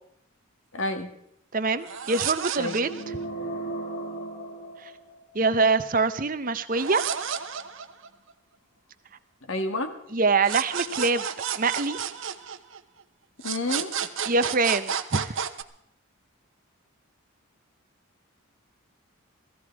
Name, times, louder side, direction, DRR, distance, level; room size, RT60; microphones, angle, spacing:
voice 1, 0.7-1.1 2.6-2.9 9.4-9.9 13.4-13.9, left 2 dB, 70° left, 7 dB, 1.8 m, -29 dB
voice 2, 1.5-2.9 5.3-7.0 10.1-11.2 11.6-12.0 14.3-15.4, right 4 dB, 40° right, 12 dB, 0.7 m, -24 dB
sound 1, 1.8-3.2 6.7-8.3 10.4-13.0 13.4-15.6, right 8 dB, 65° right, 0.9 m, -31 dB
sound 2, 2.8-5.5, right 2 dB, 55° left, 2.7 m, -35 dB
16.5 x 15.0 x 4.8 m, 0.72 s
head